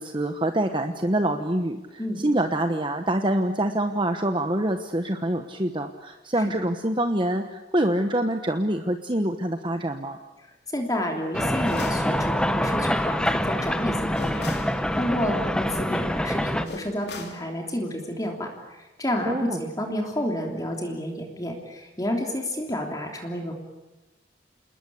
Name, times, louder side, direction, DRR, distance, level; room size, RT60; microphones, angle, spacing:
voice 1, 0.0-10.2 19.2-19.6, right 1 dB, 25° right, 6 dB, 1.2 m, -25 dB
voice 2, 10.7-23.5, left 1 dB, 20° left, 2 dB, 3.2 m, -30 dB
sound 1, 11.3-16.7, equal, 5° left, 1.1 m, -25 dB
sound 2, 11.6-12.1 14.1-14.8 16.6-17.4, left 4 dB, 65° left, 3.3 m, -38 dB
28.5 x 20.0 x 8.6 m, 1.1 s
head